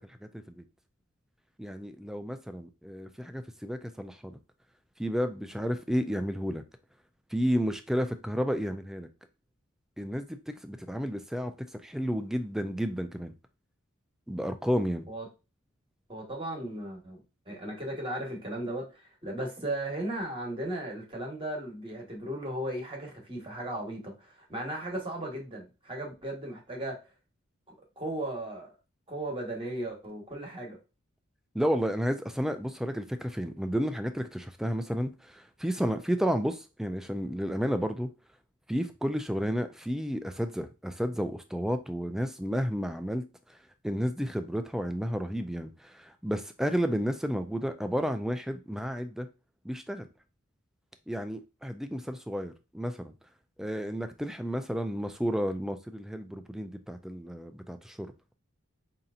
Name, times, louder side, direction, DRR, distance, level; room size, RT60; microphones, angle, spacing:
voice 1, 0.2-0.6 1.6-4.4 5.0-6.6 7.3-9.1 10.0-13.3 14.3-15.1 31.5-38.1 38.7-43.6 43.8-49.3 49.6-50.1 51.1-53.1 53.6-58.1, equal, ahead, 0.4 m, -32 dB
voice 2, 16.1-27.0 28.0-28.7 29.1-30.8, right 1 dB, 25° right, 1.2 m, -36 dB
5.2 x 2.8 x 2.4 m
head